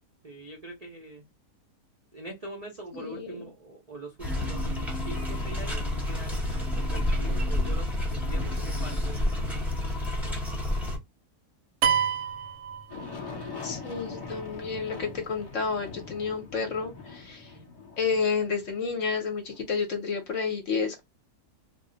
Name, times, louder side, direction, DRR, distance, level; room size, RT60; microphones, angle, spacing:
voice 1, 0.2-1.2 2.1-4.6 5.0-6.4 6.7-9.6 17.5-17.7, right 1 dB, 50° right, 0.4 m, -43 dB
voice 2, 2.9-3.5 13.6-17.5 18.0-21.0, left 5 dB, 60° left, 1.0 m, -30 dB
sound 1, 4.2-11.0, left 1 dB, ahead, 0.7 m, -29 dB
sound 2, 11.8-13.5, right 8 dB, 75° right, 1.0 m, -27 dB
Aircraft, 12.9-19.6, left 4 dB, 30° left, 1.1 m, -42 dB
2.6 x 2.1 x 3.7 m
omnidirectional pair, 1.7 m